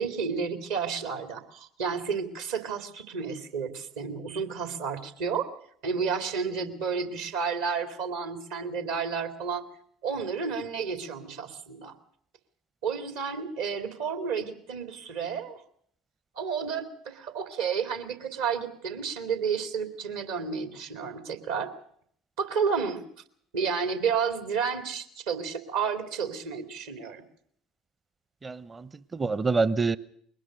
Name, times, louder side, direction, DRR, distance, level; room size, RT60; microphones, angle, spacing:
voice 1, 0.0-5.5 5.8-9.6 10.0-11.9 12.8-15.6 16.4-21.7 22.4-23.0 23.5-27.2, right 6 dB, 65° right, 2.4 m, -31 dB
voice 2, 28.4-30.0, right 4 dB, 20° right, 0.9 m, -27 dB
22.0 x 19.5 x 6.3 m
figure-of-eight pair, 60°, 0 cm